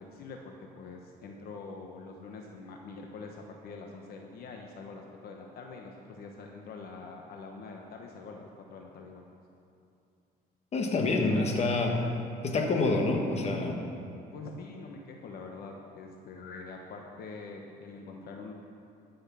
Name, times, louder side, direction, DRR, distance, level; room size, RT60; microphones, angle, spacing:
voice 1, 0.0-9.3 11.2-11.5 14.3-18.5, left 4 dB, 65° left, 1 dB, 1.1 m, -45 dB
voice 2, 10.7-12.0 12.4-13.8, left 3 dB, 40° left, 2 dB, 1.5 m, -27 dB
14.0 x 6.4 x 6.2 m, 2.6 s
cardioid pair, 110°, 17 cm